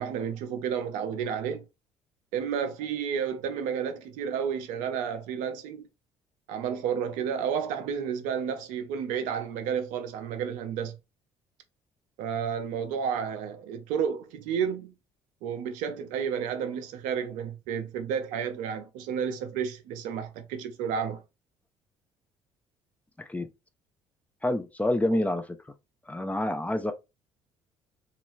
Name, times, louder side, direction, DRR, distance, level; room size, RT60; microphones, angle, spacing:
voice 1, 0.0-1.6 2.3-5.9 6.5-11.0 12.2-14.9 15.4-21.2 25.1-25.2, right 7 dB, 60° right, 0.5 m, -31 dB
voice 2, 24.4-25.4 26.1-26.9, left 1 dB, 10° left, 0.5 m, -27 dB
3.0 x 2.4 x 3.0 m
figure-of-eight pair, 50°, 14 cm